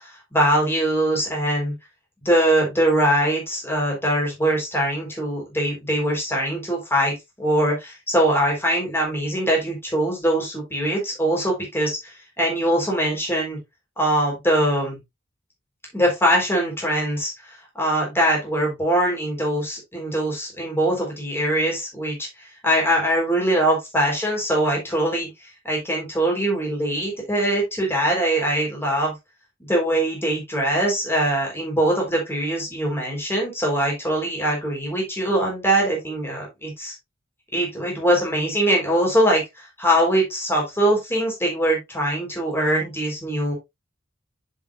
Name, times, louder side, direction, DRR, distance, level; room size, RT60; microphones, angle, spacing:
voice 1, 0.0-1.7 2.2-13.6 14.0-15.0 15.9-25.3 25.6-29.1 29.6-36.9 37.5-43.5, right 1 dB, 10° left, -1 dB, 4.1 m, -22 dB
8.3 x 7.2 x 2.5 m, 0.20 s
head